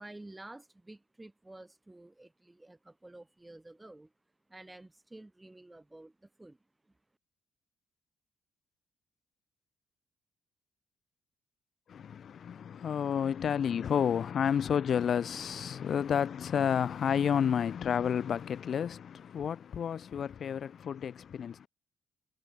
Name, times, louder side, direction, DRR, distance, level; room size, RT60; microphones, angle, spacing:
voice 1, 0.0-4.1 4.5-6.9, right 2 dB, 15° right, 4.8 m, -51 dB
voice 2, 11.9-21.7, left 8 dB, 55° left, 1.0 m, -30 dB
cardioid pair, 90°, 0 cm